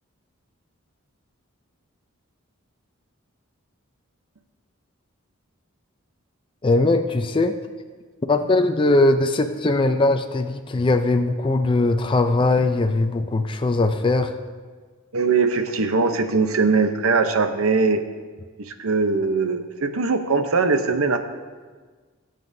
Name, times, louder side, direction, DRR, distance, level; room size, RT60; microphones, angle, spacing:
voice 1, 6.6-7.6 8.3-14.3, left 2 dB, 25° left, 6 dB, 0.4 m, -20 dB
voice 2, 15.1-18.0 18.6-21.3, right 4 dB, 85° right, 8 dB, 0.8 m, -21 dB
19.0 x 7.6 x 2.7 m, 1.5 s
head